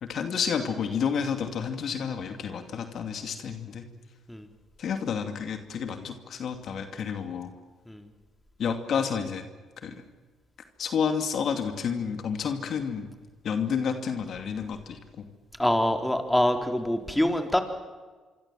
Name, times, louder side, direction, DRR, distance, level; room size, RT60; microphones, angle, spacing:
voice 1, 0.0-3.9 4.8-7.5 8.6-9.4 9.8-10.0 10.8-13.1 13.4-15.3, left 6 dB, 60° left, 7 dB, 2.5 m, -30 dB
voice 2, 15.6-17.6, left 1 dB, 5° left, 5 dB, 3.9 m, -25 dB
26.0 x 25.0 x 7.6 m, 1.3 s
supercardioid pair, 60°, 0 cm